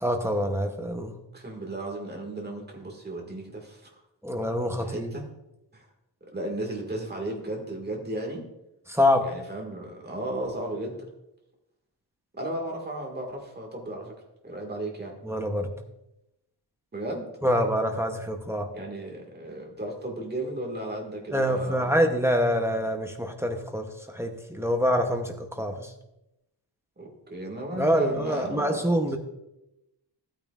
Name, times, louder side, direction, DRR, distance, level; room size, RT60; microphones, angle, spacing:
voice 1, 0.0-1.2 4.2-5.1 8.9-9.3 15.2-15.7 17.4-18.7 21.3-25.9 27.8-29.2, equal, 5° right, 4 dB, 0.7 m, -25 dB
voice 2, 1.3-3.9 4.8-5.2 5.7-5.8 6.3-8.4 9.2-11.0 12.4-14.1 14.4-15.2 16.9-17.3 18.7-22.1 27.0-28.9, right 1 dB, 25° right, 0 dB, 1.7 m, -35 dB
14.5 x 9.0 x 2.4 m, 0.91 s
wide cardioid pair, 175°, 41 cm